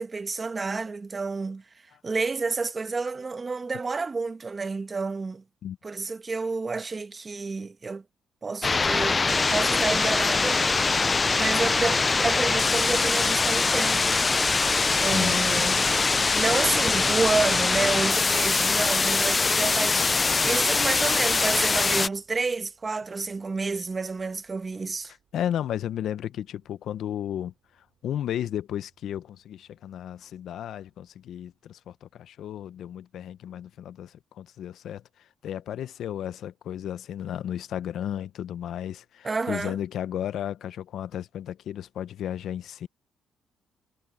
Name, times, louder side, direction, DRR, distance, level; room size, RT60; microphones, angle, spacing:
voice 1, 0.0-1.6 2.0-5.4 5.8-8.0 8.4-10.6 11.3-14.2 14.9-15.8 16.3-25.1 39.2-39.8, right 4 dB, 30° right, 1.2 m, -29 dB
sound 1, 8.6-22.1, left 4 dB, 30° left, 0.4 m, -23 dB
voice 2, 15.1-15.8 25.3-42.9, left 10 dB, 70° left, 0.8 m, -34 dB
sound 2, 20.9-30.4, right 8 dB, 60° right, 3.3 m, -53 dB
cardioid pair, 90°, 0 cm